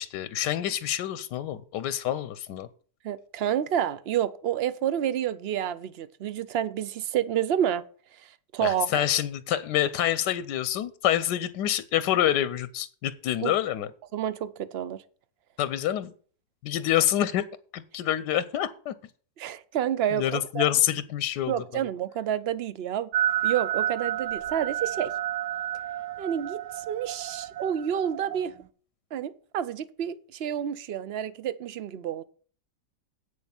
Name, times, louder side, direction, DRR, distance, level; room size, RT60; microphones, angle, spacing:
voice 1, 0.0-2.7 8.6-13.9 15.6-16.1 16.6-17.4 17.7-18.9 20.1-21.8, left 11 dB, 90° left, 1.3 m, -27 dB
voice 2, 3.0-7.8 8.5-9.0 13.4-13.5 14.1-15.0 19.4-20.6 21.5-23.1 23.4-25.1 26.2-28.5 29.1-32.2, right 10 dB, 60° right, 0.6 m, -29 dB
sound 1, 23.1-28.5, right 11 dB, 80° right, 1.2 m, -31 dB
8.2 x 6.7 x 7.0 m
omnidirectional pair, 1.8 m